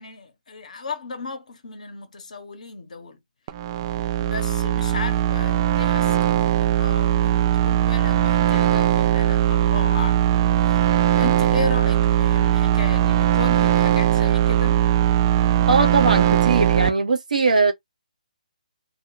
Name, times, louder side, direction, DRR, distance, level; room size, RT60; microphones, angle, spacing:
voice 1, 0.0-3.2 4.2-10.3 10.7-10.8 11.1-14.8, left 4 dB, 60° left, 0.9 m, -34 dB
sound 1, 3.5-16.9, right 11 dB, 30° right, 0.4 m, -19 dB
voice 2, 15.7-17.7, right 3 dB, 70° right, 1.0 m, -20 dB
2.4 x 2.2 x 2.9 m
figure-of-eight pair, 145°, 4 cm